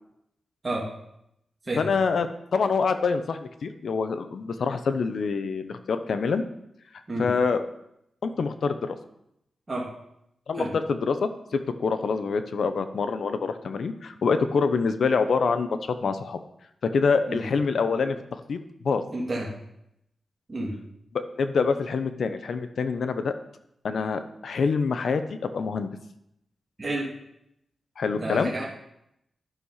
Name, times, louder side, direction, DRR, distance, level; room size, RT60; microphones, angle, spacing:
voice 1, 1.8-6.4 7.2-7.6 8.2-9.0 10.5-16.4 16.8-19.0 21.1-23.4 23.8-25.9 28.0-28.5, left 5 dB, 70° left, 10 dB, 0.8 m, -26 dB
voice 2, 19.1-19.5 20.5-20.7 26.8-27.1 28.1-28.6, right 2 dB, 25° right, -5 dB, 2.6 m, -30 dB
11.5 x 6.5 x 5.6 m, 0.79 s
wide cardioid pair, 125°, 0 cm